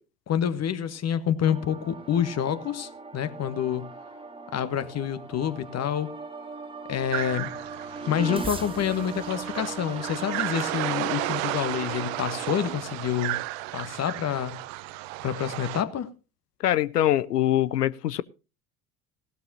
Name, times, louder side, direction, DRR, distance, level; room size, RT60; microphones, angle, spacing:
voice 1, 0.3-3.9 4.5-6.1 6.9-7.5 8.1-13.4 13.7-14.5 15.2-16.1, left 9 dB, 30° left, 1.4 m, -28 dB
sound 1, 1.4-12.8, right 3 dB, 10° right, 2.1 m, -39 dB
sound 2, 7.1-15.8, right 18 dB, 55° right, 0.9 m, -33 dB
voice 2, 16.6-18.2, left 12 dB, 75° left, 0.6 m, -23 dB
17.5 x 12.5 x 2.8 m
figure-of-eight pair, 65°, 47 cm